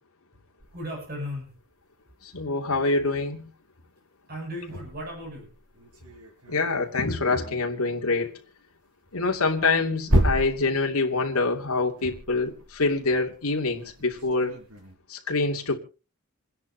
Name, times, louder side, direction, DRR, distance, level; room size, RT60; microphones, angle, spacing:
sound 1, 0.6-1.6 4.3-7.9 9.0-14.9, right 1 dB, 85° right, 6.5 m, -32 dB
voice 1, 0.7-1.6 4.3-5.5, equal, 45° right, 7.5 m, -36 dB
voice 2, 2.2-3.5 6.5-8.3 9.1-14.6 15.1-15.8, left 3 dB, 85° left, 2.8 m, -25 dB
28.5 x 10.5 x 2.9 m
head